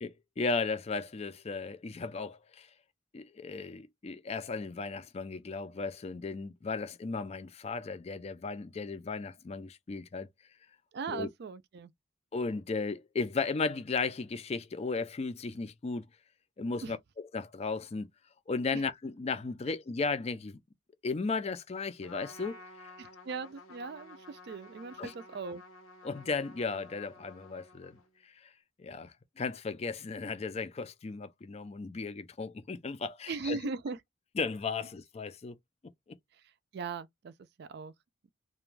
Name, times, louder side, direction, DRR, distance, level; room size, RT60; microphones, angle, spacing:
voice 1, 0.0-2.7 3.1-10.3 11.1-11.3 12.3-16.1 16.6-18.1 18.5-20.6 21.0-22.9 25.0-25.1 26.0-28.5 28.8-33.6 34.4-35.6, left 4 dB, 30° left, 0.3 m, -35 dB
voice 2, 10.9-11.9 16.8-16.9 18.7-18.8 23.0-25.6 33.3-34.0 36.7-37.3 37.6-37.9, right 4 dB, 50° right, 0.4 m, -39 dB
Trumpet, 22.0-28.2, left 2 dB, 85° left, 1.0 m, -52 dB
2.4 x 2.2 x 3.1 m
head